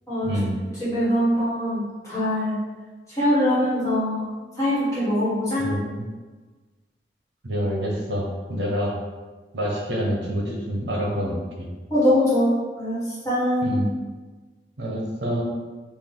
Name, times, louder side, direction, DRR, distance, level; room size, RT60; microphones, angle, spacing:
voice 1, 0.2-0.6 5.6-6.1 7.4-8.9 9.5-11.7 13.6-13.9 14.8-15.4, equal, 80° right, -2 dB, 0.8 m, -27 dB
voice 2, 0.8-2.6 3.2-4.2 4.6-5.7 11.9-13.0 13.2-13.8, left 1 dB, 20° left, -10 dB, 1.3 m, -22 dB
3.4 x 2.4 x 3.7 m, 1.3 s
head